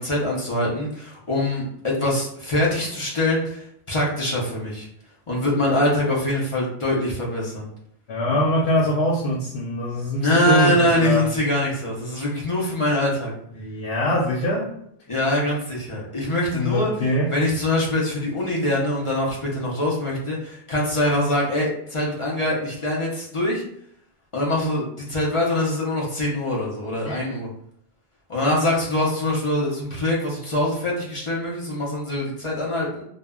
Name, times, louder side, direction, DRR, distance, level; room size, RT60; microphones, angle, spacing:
voice 1, 0.0-4.9 5.3-7.7 10.2-13.3 15.1-16.9 17.3-23.6 24.3-27.5 28.3-33.0, left 1 dB, 40° left, -4 dB, 0.5 m, -23 dB
voice 2, 8.1-11.2 13.5-14.7 16.5-17.3 27.0-27.3, equal, 90° left, -4 dB, 0.8 m, -23 dB
2.1 x 2.0 x 3.4 m, 0.71 s
omnidirectional pair, 1.1 m